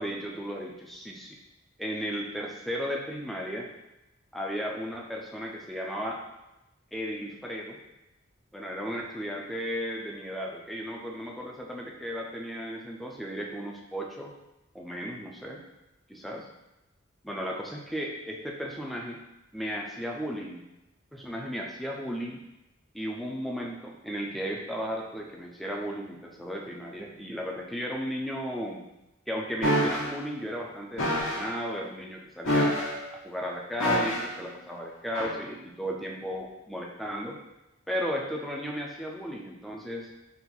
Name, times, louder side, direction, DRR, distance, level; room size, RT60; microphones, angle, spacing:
voice 1, 0.0-1.4 1.8-3.7 4.3-6.2 6.9-7.8 8.5-14.3 14.7-15.7 16.1-16.5 17.2-19.2 19.5-20.6 21.1-22.4 22.9-28.8 29.3-32.7 33.2-37.4 37.9-40.1, equal, ahead, -1 dB, 0.4 m, -35 dB
sound 1, 29.6-30.1 31.0-31.5 32.4-33.1 33.8-34.4 35.1-35.3, equal, 80° left, 1.2 m, -26 dB
3.9 x 2.5 x 4.2 m, 0.97 s
head